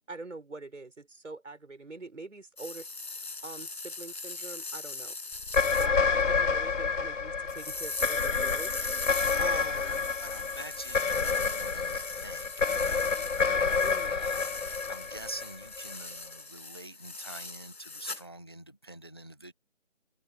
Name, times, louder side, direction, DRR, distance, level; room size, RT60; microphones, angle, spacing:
voice 1, 0.1-5.2 5.8-8.9 9.4-10.0 13.8-14.1, right 3 dB, 70° right, 6.1 m, -44 dB
sound 1, 2.6-5.9 7.5-18.2, left 3 dB, 55° left, 5.8 m, -40 dB
sound 2, 5.4-15.9, left 5 dB, 75° left, 1.0 m, -29 dB
voice 2, 5.9-6.2 9.0-13.1 13.4-19.5, right 2 dB, 20° left, 0.9 m, -46 dB
figure-of-eight pair, 170°, 38 cm